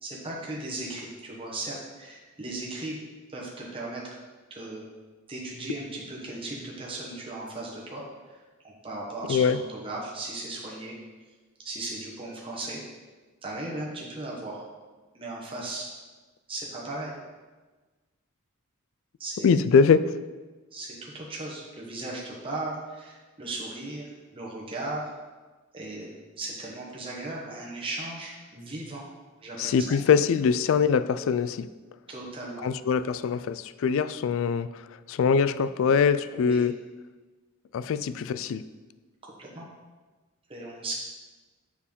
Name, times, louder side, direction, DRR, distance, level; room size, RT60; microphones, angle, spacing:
voice 1, 0.0-3.0 3.3-4.2 4.5-4.8 5.3-11.0 11.6-12.8 13.4-14.6 15.1-15.9 16.5-17.1 19.2-19.5 20.7-25.1 25.7-26.1 26.4-29.0 29.4-29.9 32.1-32.6 36.3-36.6 39.2-39.7 40.5-40.9, right 2 dB, 25° right, -4 dB, 1.1 m, -37 dB
voice 2, 19.4-20.1 29.6-31.7 32.6-34.8 35.1-36.7 37.7-38.6, left 6 dB, 65° left, 14 dB, 0.3 m, -23 dB
7.2 x 4.5 x 5.3 m, 1.3 s
head